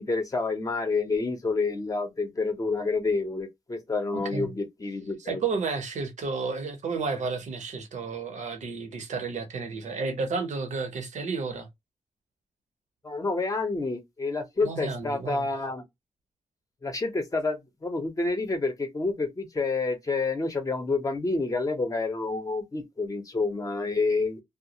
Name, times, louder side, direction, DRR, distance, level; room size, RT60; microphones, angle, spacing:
voice 1, 0.0-5.4 13.0-15.8 16.8-24.4, left 3 dB, 30° left, 0.6 m, -28 dB
voice 2, 4.1-4.5 5.2-11.7 14.6-15.5, right 4 dB, 75° right, 0.7 m, -32 dB
2.3 x 2.0 x 2.7 m
wide cardioid pair, 125°, 12 cm